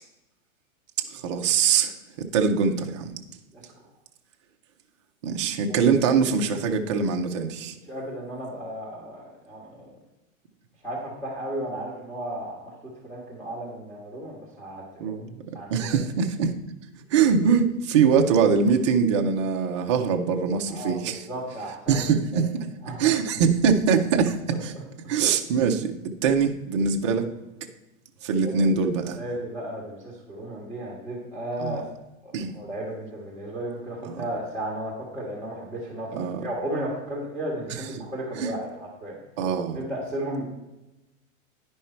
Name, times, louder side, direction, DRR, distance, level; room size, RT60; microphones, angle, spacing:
voice 1, 1.1-1.9 2.2-3.1 5.2-7.8 15.0-15.3 15.7-16.5 17.1-21.2 21.9-22.7 23.0-24.7 25.1-27.3 28.2-29.2 31.6-31.8 32.3-32.5 34.1-34.2 36.1-36.5 38.4-38.5 39.4-39.8, right 6 dB, 25° right, 3 dB, 0.4 m, -23 dB
voice 2, 7.9-9.9 10.8-12.8 13.0-15.1 15.5-16.0 18.1-18.3 20.7-22.0 22.3-22.4 22.8-23.1 28.4-28.6 29.2-31.8 32.2-36.1 36.4-39.2 39.7-40.5, right 1 dB, 5° left, -6 dB, 1.4 m, -34 dB
10.0 x 5.4 x 4.3 m, 0.99 s
hypercardioid pair, 160°, 41 cm